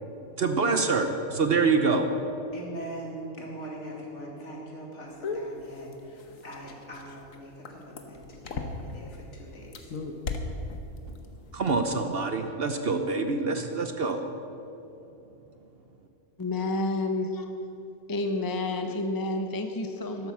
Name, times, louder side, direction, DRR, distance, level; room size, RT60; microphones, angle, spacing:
voice 1, 0.4-2.1 11.5-14.2, right 4 dB, 50° right, 7 dB, 1.0 m, -25 dB
voice 2, 2.5-9.9, right 1 dB, 60° left, -2 dB, 2.8 m, -42 dB
sound 1, 5.2-9.1 9.6-11.2 11.5-11.8, left 4 dB, 80° left, 1.5 m, -36 dB
voice 3, 16.4-17.5 18.1-20.3, left 2 dB, 20° left, 5 dB, 0.6 m, -29 dB
12.5 x 12.0 x 7.3 m, 3.0 s
omnidirectional pair, 1.4 m